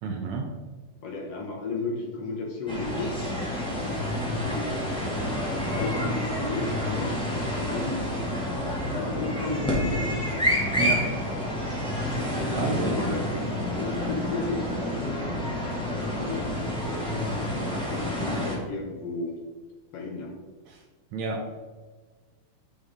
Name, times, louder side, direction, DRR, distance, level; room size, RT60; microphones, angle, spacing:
voice 1, 0.0-0.5 10.8-11.1 12.5-12.9 20.7-20.8 21.1-21.4, right 4 dB, 80° right, 1 dB, 1.6 m, -30 dB
voice 2, 1.0-3.3 4.3-7.1 7.4-8.4 8.9-10.2 12.3-13.3 13.7-15.2 15.8-19.4 19.9-20.3, left 3 dB, 70° left, 0 dB, 1.5 m, -34 dB
sound 1, 2.7-18.5, left 1 dB, 5° left, 0.6 m, -29 dB
9.1 x 5.1 x 3.6 m, 1.4 s
omnidirectional pair, 4.1 m